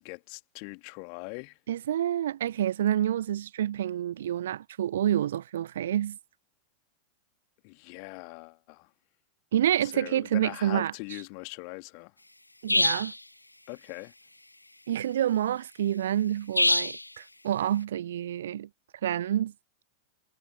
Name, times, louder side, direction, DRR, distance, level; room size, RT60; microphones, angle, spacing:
voice 1, 0.0-1.6 7.6-8.9 9.8-12.1 13.7-14.1, left 40 dB or more, 45° left, 2.1 m, -41 dB
voice 2, 1.7-6.2 9.5-10.9 12.6-13.1 14.9-18.7 19.0-19.5, right 11 dB, 60° right, 0.5 m, -28 dB
sound 1, 12.7-13.2 16.6-17.0, left 1 dB, 85° left, 1.1 m, -24 dB
figure-of-eight pair, 90°, 0 cm